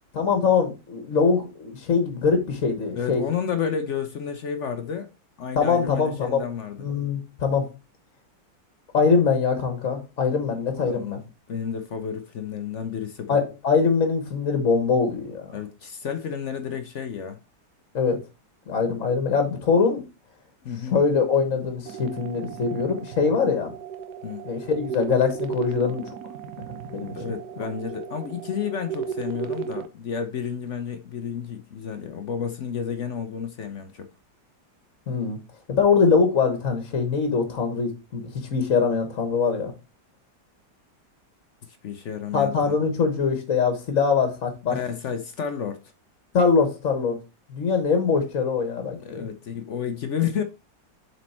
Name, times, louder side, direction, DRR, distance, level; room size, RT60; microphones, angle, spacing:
voice 1, 0.1-3.2 5.5-6.4 6.8-7.7 8.9-11.2 13.3-15.6 17.9-18.2 18.7-20.0 20.9-23.7 24.4-26.1 26.7-27.1 35.1-35.4 35.7-38.2 38.5-39.7 42.3-44.8 46.3-47.2 47.5-49.3, left 5 dB, 50° left, 1.5 m, -23 dB
voice 2, 3.0-5.1 5.4-6.8 10.9-13.4 15.5-17.4 20.6-21.0 24.2-24.4 27.1-34.1 41.7-42.7 44.7-45.8 49.0-50.4, left 7 dB, 65° left, 0.7 m, -31 dB
sound 1, 21.9-29.9, right 7 dB, 65° right, 1.2 m, -35 dB
7.6 x 4.2 x 4.2 m
omnidirectional pair, 2.0 m